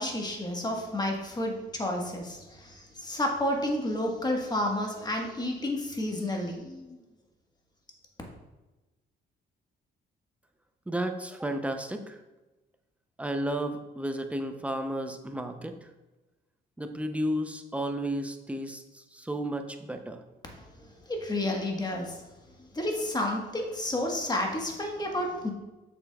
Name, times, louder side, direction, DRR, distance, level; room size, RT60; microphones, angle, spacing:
voice 1, 0.0-7.0 21.1-22.2 22.7-25.5, left 1 dB, 20° left, 1 dB, 1.3 m, -31 dB
voice 2, 10.9-12.2 13.2-15.7 16.8-20.2, right 1 dB, 5° right, 6 dB, 0.6 m, -33 dB
7.3 x 5.8 x 2.3 m, 1.1 s
cardioid pair, 90°, 20 cm